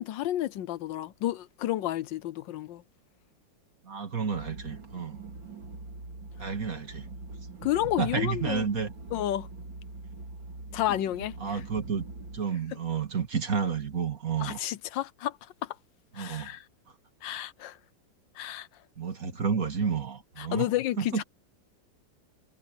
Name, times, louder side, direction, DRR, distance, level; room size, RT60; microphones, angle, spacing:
voice 1, 0.0-2.8 7.6-8.7 9.1-9.5 10.7-11.6 14.4-15.4 15.6-15.8 16.1-16.6 17.2-17.8 18.4-18.7 20.4-21.2, left 13 dB, 75° left, 1.4 m, -31 dB
voice 2, 3.8-5.2 6.4-7.1 8.0-8.9 10.9-11.0 11.4-12.0 12.3-14.6 16.1-16.6 19.0-20.7 21.0-21.2, right 6 dB, 45° right, 2.5 m, -30 dB
sound 1, 4.3-12.4, right 3 dB, 75° right, 4.0 m, -43 dB
omnidirectional pair, 2.0 m